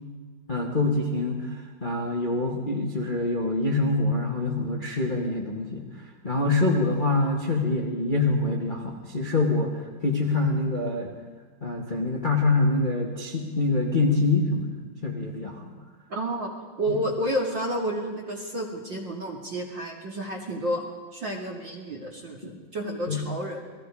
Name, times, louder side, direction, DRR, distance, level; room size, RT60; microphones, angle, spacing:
voice 1, 0.5-5.8 6.2-11.1 11.6-14.7 15.0-15.7 16.9-17.0 22.4-22.5 23.1-23.2, left 2 dB, 25° left, -1 dB, 1.1 m, -25 dB
voice 2, 16.1-16.5 16.8-20.8 21.1-23.6, right 1 dB, 35° right, 0 dB, 2.2 m, -30 dB
29.5 x 21.0 x 5.1 m, 1.5 s
omnidirectional pair, 5.0 m